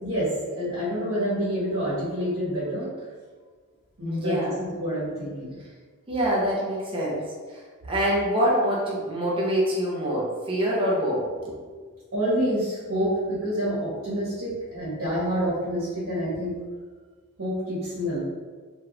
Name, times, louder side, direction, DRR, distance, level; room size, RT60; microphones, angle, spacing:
voice 1, 0.0-2.9 4.0-5.5 12.1-16.5 17.4-18.2, equal, 60° right, -8 dB, 1.1 m, -27 dB
voice 2, 4.0-4.5 6.1-7.6 7.9-11.6, equal, 25° right, -5 dB, 0.6 m, -25 dB
3.0 x 2.4 x 3.2 m, 1.5 s
head